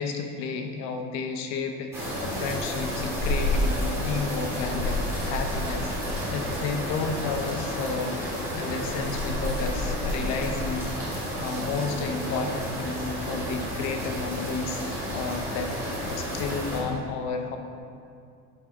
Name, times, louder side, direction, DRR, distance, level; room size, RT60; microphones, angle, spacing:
voice 1, 0.0-8.2 8.5-14.8 15.1-15.7 16.1-17.6, left 4 dB, 60° left, 5 dB, 1.0 m, -32 dB
sound 1, 1.9-16.8, equal, 10° right, 2.5 m, -30 dB
11.5 x 6.9 x 3.9 m, 2.4 s
cardioid pair, 180°, 30 cm